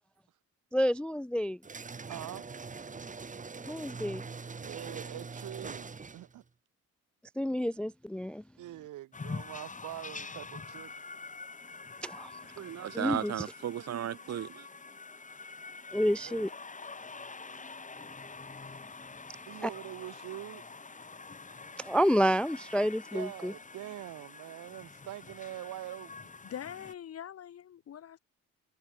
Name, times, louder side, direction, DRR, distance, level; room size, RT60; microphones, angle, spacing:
voice 1, 0.7-1.6 3.7-4.2 7.4-8.4 12.0-12.3 12.9-13.4 15.9-16.5 19.6-19.7 21.8-23.5, equal, 5° left, 0.3 m, -29 dB
sound 1, 1.6-6.4, right 4 dB, 25° right, 1.6 m, -43 dB
voice 2, 2.0-2.4 4.6-6.4 8.6-11.0 16.2-16.5 19.5-20.6 23.1-26.3, right 14 dB, 80° right, 2.7 m, -44 dB
sound 2, 9.1-26.9, left 4 dB, 25° left, 2.9 m, -46 dB
voice 3, 12.6-14.6, right 10 dB, 60° right, 1.4 m, -35 dB
voice 4, 26.4-28.2, left 10 dB, 50° left, 1.2 m, -43 dB
cardioid pair, 90°, 30 cm